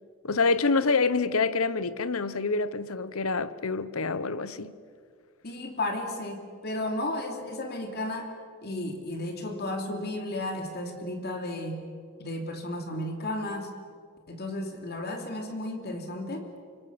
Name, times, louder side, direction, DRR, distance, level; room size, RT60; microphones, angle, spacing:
voice 1, 0.2-4.7, left 4 dB, 70° left, 0.9 m, -26 dB
voice 2, 5.4-8.3 8.6-11.9 12.2-13.7 14.3-16.5, left 1 dB, 50° left, 2.8 m, -33 dB
26.0 x 25.0 x 7.0 m
head